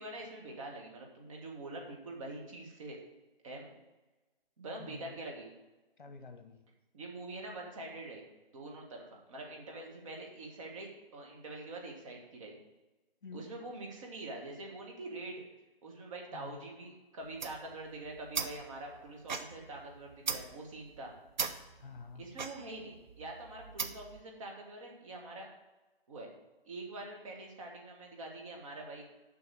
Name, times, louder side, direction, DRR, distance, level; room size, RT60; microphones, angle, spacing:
voice 1, 0.0-3.0 3.4-3.7 4.6-5.5 6.9-8.2 8.5-12.6 13.3-15.4 15.8-21.1 22.1-25.5 26.1-26.3 26.6-29.0, right 2 dB, 35° right, 0 dB, 2.0 m, -45 dB
voice 2, 4.8-5.2 6.0-6.6 13.2-13.5 16.3-16.7 21.7-22.4, left 4 dB, 55° left, 6 dB, 1.4 m, -49 dB
sound 1, 17.2-24.2, right 5 dB, 50° right, 0.8 m, -40 dB
7.1 x 6.1 x 7.8 m, 1.1 s
figure-of-eight pair, 150°, 30 cm